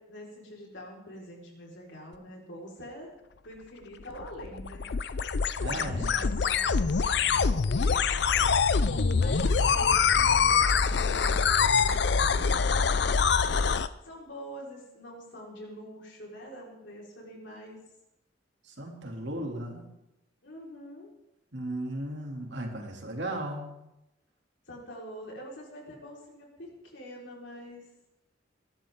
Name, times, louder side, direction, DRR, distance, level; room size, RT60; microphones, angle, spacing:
voice 1, 0.0-3.1 3.4-4.9 5.6-8.2 8.8-12.6 14.0-17.8 20.4-21.1 24.7-27.9, equal, 85° left, -2 dB, 4.5 m, -45 dB
sound 1, 4.0-13.9, left 5 dB, 60° left, 0.5 m, -25 dB
voice 2, 5.6-6.1 8.8-9.9 18.6-19.9 21.5-23.7, right 1 dB, 70° right, 1 dB, 2.7 m, -36 dB
21.5 x 12.0 x 3.7 m, 0.90 s
head